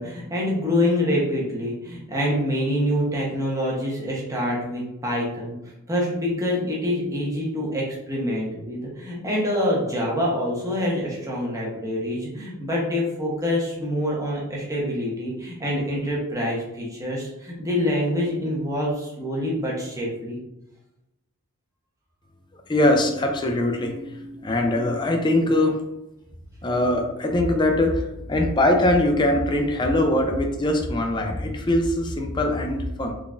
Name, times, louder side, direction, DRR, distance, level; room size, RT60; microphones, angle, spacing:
voice 1, 0.0-5.6 5.9-20.4, left 1 dB, 15° right, -4 dB, 0.9 m, -26 dB
voice 2, 22.5-25.8 26.6-33.1, left 1 dB, 20° left, 3 dB, 0.4 m, -22 dB
3.8 x 3.4 x 2.4 m, 0.89 s
head